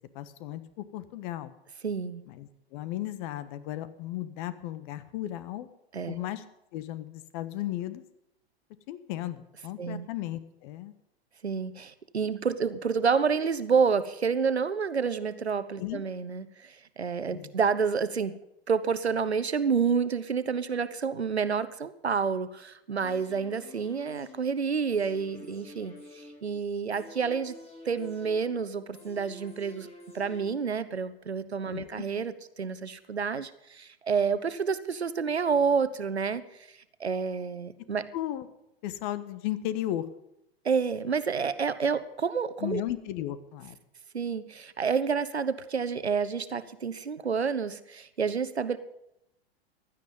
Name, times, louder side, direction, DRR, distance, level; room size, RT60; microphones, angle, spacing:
voice 1, 0.1-1.5 2.3-5.7 6.1-6.4 6.7-8.0 8.9-10.9 15.8-16.0 17.3-17.5 31.7-32.0 38.1-38.5 38.8-40.1 42.6-43.8, left 13 dB, 50° left, 13 dB, 1.3 m, -35 dB
voice 2, 1.8-2.2 5.9-6.2 9.8-10.1 11.4-18.4 18.7-27.6 27.8-29.9 30.1-36.4 37.0-38.1 40.6-42.8 44.1-48.8, right 6 dB, 90° right, 14 dB, 1.0 m, -29 dB
sound 1, 23.0-31.0 31.3-31.4, left 2 dB, 20° left, 5.7 m, -50 dB
16.0 x 12.0 x 5.4 m, 0.82 s
figure-of-eight pair, 95°, 32 cm